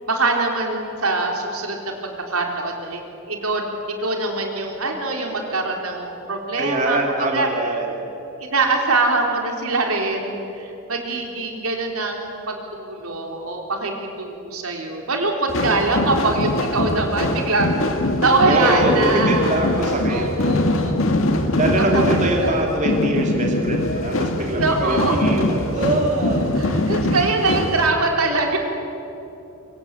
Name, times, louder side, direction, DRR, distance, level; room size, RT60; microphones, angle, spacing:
voice 1, 0.1-1.9 2.3-3.0 3.3-3.7 4.0-7.5 8.4-17.9 18.2-19.5 20.1-21.4 21.8-22.0 22.4-22.7 24.5-25.2 26.6-28.6, right 3 dB, 75° right, 2 dB, 3.9 m, -23 dB
voice 2, 6.6-7.9 18.4-20.6 21.6-26.7, right 1 dB, 35° right, 1 dB, 2.7 m, -23 dB
sound 1, 15.5-27.9, left 1 dB, 60° left, 1.9 m, -22 dB
24.5 x 24.0 x 8.4 m, 2.9 s
head